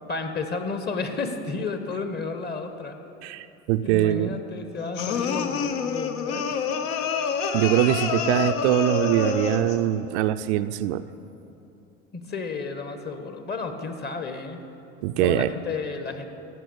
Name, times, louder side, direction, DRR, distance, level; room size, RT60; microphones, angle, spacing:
voice 1, 0.1-3.0 3.8-6.5 12.1-14.6 15.2-16.3, left 4 dB, 25° left, 7 dB, 1.3 m, -32 dB
voice 2, 3.2-4.4 7.5-11.0 15.0-15.5, right 13 dB, 65° right, 10 dB, 0.5 m, -23 dB
sound 1, 5.0-9.8, left 6 dB, 60° left, 1.0 m, -27 dB
14.0 x 6.0 x 8.0 m, 2.8 s
hypercardioid pair, 95°, 36 cm